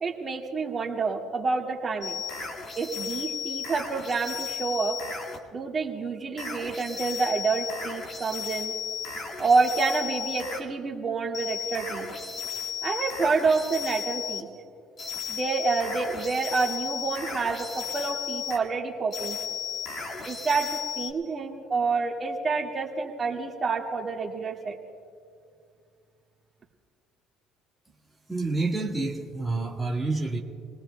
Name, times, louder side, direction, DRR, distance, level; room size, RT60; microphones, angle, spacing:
voice 1, 0.0-2.2 2.8-5.0 5.5-8.7 9.4-12.1 12.8-14.5 15.3-19.4 20.3-24.8, right 4 dB, 35° right, 0 dB, 2.0 m, -28 dB
sound 1, 2.0-5.4 6.4-10.6 11.3-14.5 15.0-18.6 19.1-21.1, left 6 dB, 45° left, 2.0 m, -34 dB
voice 2, 28.3-30.4, right 3 dB, ahead, -3 dB, 1.7 m, -28 dB
28.0 x 18.5 x 2.3 m, 2.3 s
supercardioid pair, 95°, 0 cm